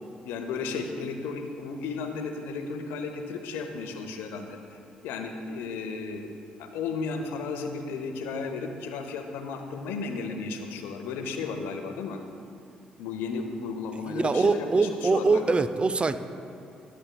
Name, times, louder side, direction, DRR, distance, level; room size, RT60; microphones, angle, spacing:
voice 1, 0.0-4.8 5.0-6.3 6.6-12.2 13.0-15.4, left 4 dB, 70° left, 6 dB, 0.6 m, -34 dB
voice 2, 14.0-16.2, right 3 dB, 30° right, 12 dB, 0.4 m, -23 dB
11.5 x 6.7 x 2.2 m, 2.6 s
hypercardioid pair, 45°, 4 cm